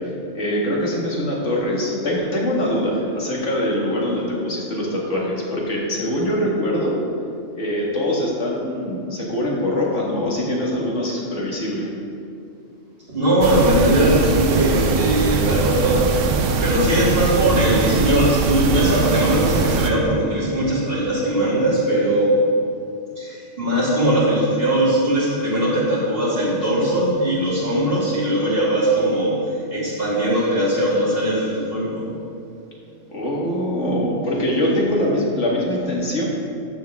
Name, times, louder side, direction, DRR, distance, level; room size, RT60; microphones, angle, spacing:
voice 1, 0.3-7.0 7.6-11.9 33.1-36.2, left 1 dB, 80° left, -3 dB, 2.1 m, -23 dB
voice 2, 13.1-16.1 16.6-22.4 23.2-32.1, right 1 dB, 50° right, -8 dB, 2.9 m, -20 dB
sound 1, 13.4-19.9, right 4 dB, 85° right, 1.0 m, -21 dB
13.5 x 7.5 x 3.6 m, 2.5 s
omnidirectional pair, 1.2 m